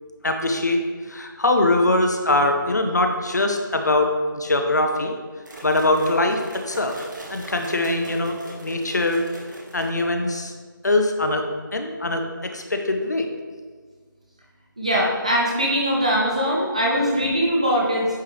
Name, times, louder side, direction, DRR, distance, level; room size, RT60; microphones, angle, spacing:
voice 1, 0.2-0.8 1.1-5.1 5.6-6.4 6.7-7.0 7.3-9.2 9.7-10.5 10.8-12.2 12.5-13.3, left 2 dB, 55° left, 5 dB, 0.6 m, -22 dB
sound 1, 5.5-10.3, right 1 dB, 60° right, 1.4 m, -40 dB
voice 2, 14.8-18.1, equal, 20° right, -4 dB, 0.5 m, -21 dB
9.0 x 3.1 x 3.3 m, 1.5 s
figure-of-eight pair, 175°, 11 cm